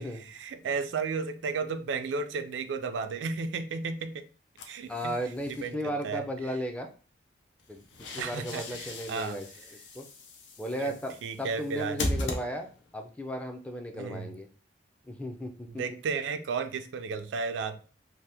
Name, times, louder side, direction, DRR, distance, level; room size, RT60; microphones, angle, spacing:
voice 1, 0.0-4.3 4.6-5.1 5.5-6.2 8.2-9.4 10.8-10.9 11.2-12.0 13.9-14.3 15.7-17.8, right 5 dB, 85° right, 0.4 m, -34 dB
sound 1, 4.6-5.7 7.6-13.0, left 1 dB, 90° left, 0.5 m, -38 dB
voice 2, 4.9-6.9 7.7-7.9 8.1-9.5 9.9-10.0 10.6-14.5 15.0-15.8, equal, 10° left, 0.3 m, -35 dB
2.7 x 2.1 x 3.3 m
head